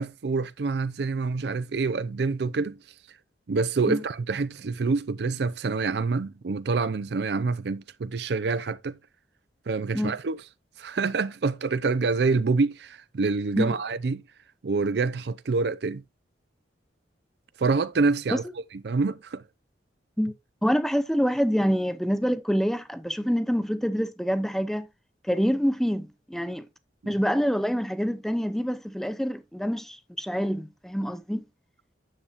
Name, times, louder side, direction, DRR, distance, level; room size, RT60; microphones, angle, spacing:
voice 1, 0.0-2.8 3.5-9.0 9.7-10.4 10.8-14.2 14.6-16.0 17.6-18.4 18.8-19.4 27.0-27.1, right 4 dB, 60° right, 0.5 m, -26 dB
voice 2, 20.6-24.9 25.2-26.7 27.1-31.4, equal, ahead, 0.6 m, -26 dB
10.0 x 7.0 x 2.4 m
head